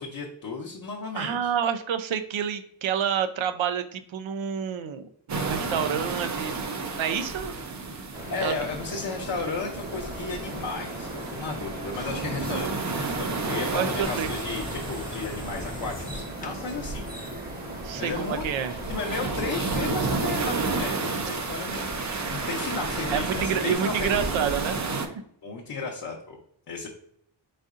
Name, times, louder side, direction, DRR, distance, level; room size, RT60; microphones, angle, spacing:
voice 1, 0.0-1.5 8.3-17.1 18.0-18.4 18.9-21.9 22.3-24.3 25.4-26.4 26.7-26.9, left 4 dB, 50° left, -1 dB, 0.7 m, -34 dB
voice 2, 1.1-7.5 8.4-8.5 13.7-14.3 17.8-18.7 21.0-21.1 23.1-25.1, right 8 dB, 85° right, 10 dB, 0.6 m, -29 dB
sound 1, 5.3-25.1, right 3 dB, 40° right, 0.5 m, -32 dB
sound 2, 8.1-23.7, right 1 dB, 20° right, 0.9 m, -39 dB
sound 3, 14.0-19.0, left 2 dB, 20° left, 0.3 m, -42 dB
4.1 x 3.7 x 2.4 m, 0.67 s
wide cardioid pair, 140°, 45 cm